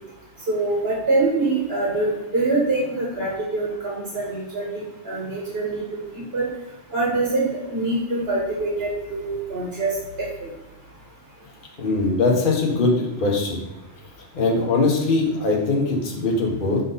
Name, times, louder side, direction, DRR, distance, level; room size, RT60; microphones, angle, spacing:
voice 1, 0.5-5.8 6.1-6.5 6.9-9.9 10.4-10.5, right 2 dB, 60° right, -4 dB, 1.6 m, -24 dB
voice 2, 11.8-13.6 14.3-16.8, left 3 dB, 50° left, -1 dB, 1.2 m, -21 dB
6.6 x 4.0 x 3.9 m, 1.0 s
omnidirectional pair, 1.2 m